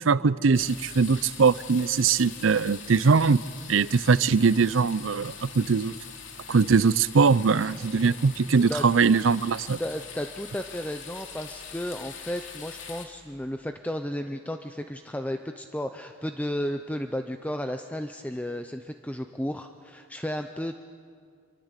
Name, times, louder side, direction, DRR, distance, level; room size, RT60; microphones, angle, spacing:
voice 1, 0.0-3.4 3.7-5.9 6.5-9.8, right 5 dB, 80° right, 0.6 m, -21 dB
sound 1, 0.5-13.1, left 6 dB, 70° left, 2.9 m, -43 dB
voice 2, 8.5-8.8 9.8-20.7, equal, 5° left, 0.6 m, -33 dB
26.5 x 24.0 x 8.2 m
head